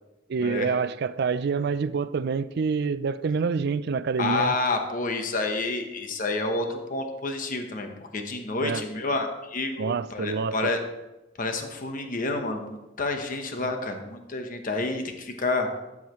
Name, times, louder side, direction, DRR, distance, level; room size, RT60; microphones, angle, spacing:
voice 1, 0.3-4.5 8.6-8.8 9.8-10.7 13.6-13.7, right 5 dB, 60° right, 15 dB, 0.4 m, -27 dB
voice 2, 4.2-10.8 11.4-15.7, left 3 dB, 45° left, 5 dB, 1.0 m, -29 dB
12.5 x 7.3 x 3.1 m, 1.0 s
head